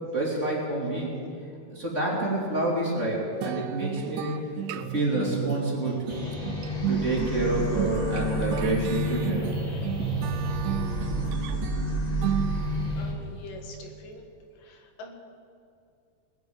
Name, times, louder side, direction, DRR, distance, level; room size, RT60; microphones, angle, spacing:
voice 1, 0.1-1.1 1.7-4.4 4.9-6.2 6.9-9.5, right 2 dB, 20° right, -3 dB, 2.9 m, -28 dB
sound 1, 3.4-13.1, right 9 dB, 80° right, 2.0 m, -33 dB
sound 2, 6.1-13.1, equal, 30° left, 0.7 m, -30 dB
voice 2, 13.0-14.2 14.6-15.1, left 2 dB, 85° left, 3 dB, 3.4 m, -44 dB
19.5 x 8.3 x 8.7 m, 2.4 s
omnidirectional pair, 3.8 m